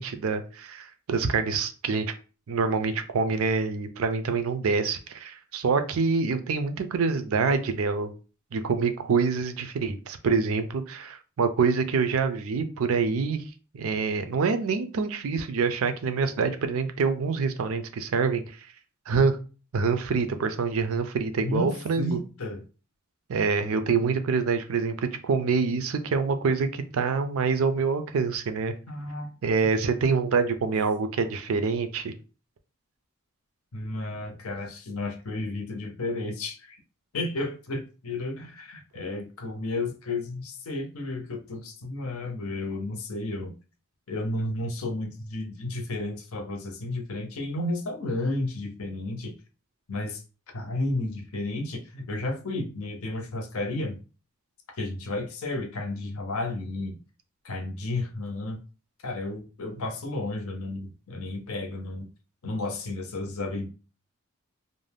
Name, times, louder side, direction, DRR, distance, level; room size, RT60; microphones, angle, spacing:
voice 1, 0.0-2.1 2.5-8.1 8.5-13.4 13.7-18.7 19.1-19.4 19.7-22.2 23.3-28.7 29.4-32.1, right 5 dB, 70° right, 9 dB, 0.4 m, -26 dB
voice 2, 21.4-22.6 28.9-29.3 33.7-36.8 37.1-43.5 44.1-49.3 49.9-50.2 50.5-54.0 54.8-57.0 57.4-58.6 59.0-62.1 62.4-63.7, left 2 dB, 75° left, 4 dB, 0.6 m, -32 dB
2.5 x 2.1 x 3.3 m, 0.35 s
head